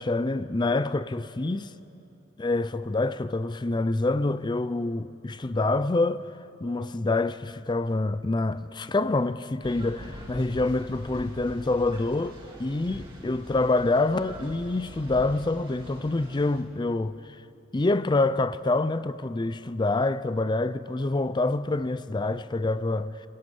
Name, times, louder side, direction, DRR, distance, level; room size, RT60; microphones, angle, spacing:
voice 1, 0.0-1.7 2.4-6.3 6.6-17.4 17.7-23.3, left 2 dB, 20° left, 0.5 m, -26 dB
sound 1, 9.6-16.6, equal, 25° right, 2.8 m, -43 dB
25.5 x 15.0 x 9.4 m
head